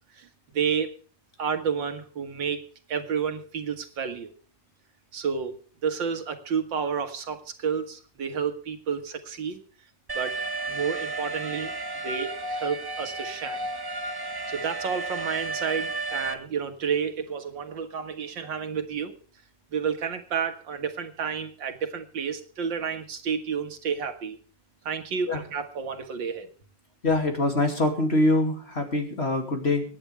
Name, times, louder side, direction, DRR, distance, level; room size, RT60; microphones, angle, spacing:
voice 1, 0.5-0.9 1.4-2.6 2.9-4.3 5.1-5.5 5.8-9.6 10.2-10.4 10.7-11.7 12.0-13.6 14.5-19.1 19.7-24.4 24.9-26.5, right 6 dB, 80° right, 7 dB, 2.4 m, -30 dB
Alarm, 10.1-16.3, right 2 dB, 15° right, 1.1 m, -32 dB
voice 2, 27.0-29.8, left 2 dB, 35° left, 4 dB, 2.8 m, -24 dB
25.5 x 10.0 x 3.4 m, 0.40 s
omnidirectional pair, 2.0 m